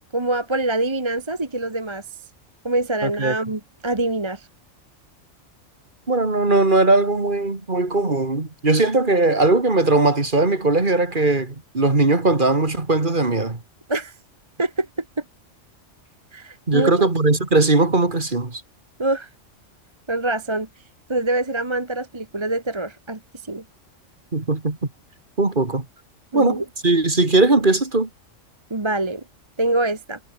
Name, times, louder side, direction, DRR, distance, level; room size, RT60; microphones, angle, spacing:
voice 1, 0.1-2.0 2.6-4.5 13.9-14.1 14.6-15.2 16.3-17.1 19.0-19.3 20.1-20.7 21.1-23.6 26.3-26.6 28.7-29.2 29.6-30.2, right 2 dB, 20° right, 1.5 m, -25 dB
voice 2, 3.0-3.3 6.1-13.6 16.7-18.6 24.3-24.8 25.4-25.9 26.3-28.1, right 2 dB, 40° right, 2.7 m, -19 dB
omnidirectional pair, 1.3 m